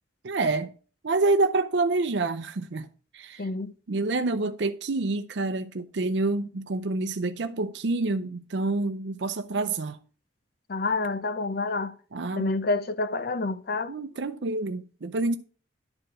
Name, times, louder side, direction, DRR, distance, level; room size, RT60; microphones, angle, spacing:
voice 1, 0.2-0.7 1.0-2.9 3.1-3.5 3.9-10.0 12.1-12.5 13.9-15.4, right 3 dB, 80° right, 0.6 m, -27 dB
voice 2, 3.4-3.7 10.7-11.9 12.4-13.9, left 3 dB, 60° left, 0.7 m, -28 dB
11.5 x 4.7 x 6.2 m
head